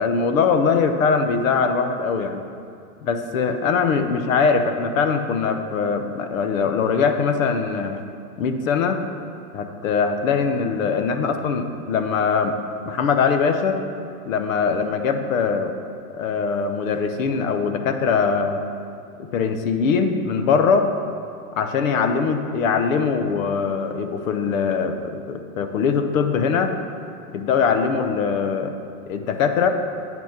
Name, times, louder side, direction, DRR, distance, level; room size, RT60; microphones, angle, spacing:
voice 1, 0.0-2.4 3.0-8.0 8.4-9.0 9.5-12.6 12.9-13.8 14.3-15.7 16.1-18.6 19.3-20.9 21.6-26.8 27.3-28.7 29.1-29.7, left 5 dB, 60° left, 7 dB, 0.9 m, -22 dB
8.9 x 6.1 x 5.9 m, 2.5 s
hypercardioid pair, 145°, 45 cm